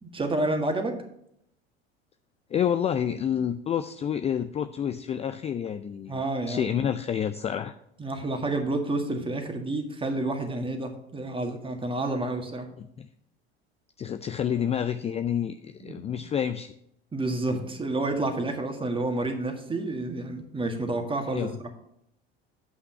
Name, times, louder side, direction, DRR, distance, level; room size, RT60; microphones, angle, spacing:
voice 1, 0.0-1.0 6.1-6.7 8.0-12.7 15.8-16.0 17.1-21.7, right 2 dB, 15° right, 5 dB, 1.9 m, -29 dB
voice 2, 2.5-7.7 12.8-13.1 14.0-16.7 21.3-21.6, left 9 dB, 20° left, 10 dB, 0.4 m, -29 dB
8.4 x 5.8 x 5.6 m, 0.74 s
figure-of-eight pair, 75°, 31 cm